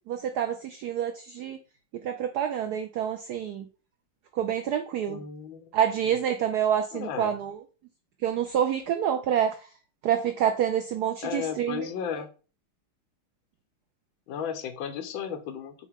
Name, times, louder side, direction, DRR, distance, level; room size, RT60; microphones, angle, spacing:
voice 1, 0.1-1.6 2.0-3.7 4.4-5.2 5.7-7.6 8.2-9.6 10.0-11.9, right 9 dB, 70° right, 8 dB, 1.0 m, -27 dB
voice 2, 5.1-5.7 6.0-6.2 6.9-7.3 11.2-12.3 14.3-15.7, left 7 dB, 70° left, 7 dB, 1.7 m, -34 dB
8.3 x 4.4 x 3.7 m, 0.36 s
omnidirectional pair, 2.3 m